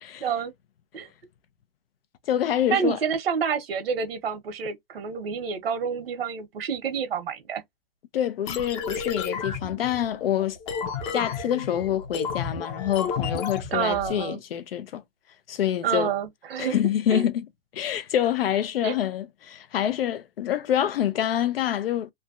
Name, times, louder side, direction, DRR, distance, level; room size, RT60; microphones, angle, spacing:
voice 1, 0.2-0.5 0.9-1.1 2.7-7.6 13.7-14.4 15.8-16.8 17.1-17.2 18.8-18.9, right 6 dB, 80° right, 1.3 m, -28 dB
voice 2, 2.3-3.0 8.1-10.6 11.1-15.0 15.5-16.1 16.6-17.5 17.7-22.1, left 10 dB, 75° left, 0.7 m, -26 dB
sound 1, 8.5-14.2, left 5 dB, 30° left, 0.7 m, -32 dB
3.2 x 2.3 x 2.5 m
hypercardioid pair, 145°, 29 cm